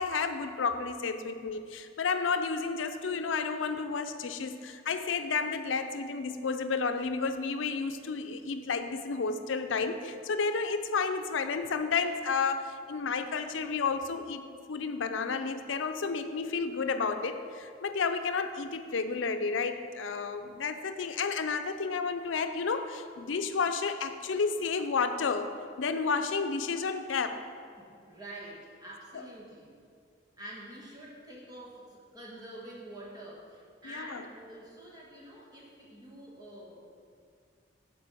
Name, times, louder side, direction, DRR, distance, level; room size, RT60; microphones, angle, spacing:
voice 1, 0.0-14.4 14.7-25.5 25.8-27.4 29.1-29.2 33.8-34.2, left 5 dB, 85° left, 9 dB, 0.5 m, -31 dB
voice 2, 27.8-29.8 30.4-36.9, right 1 dB, 20° right, -5 dB, 1.5 m, -47 dB
7.8 x 4.3 x 6.7 m, 2.3 s
head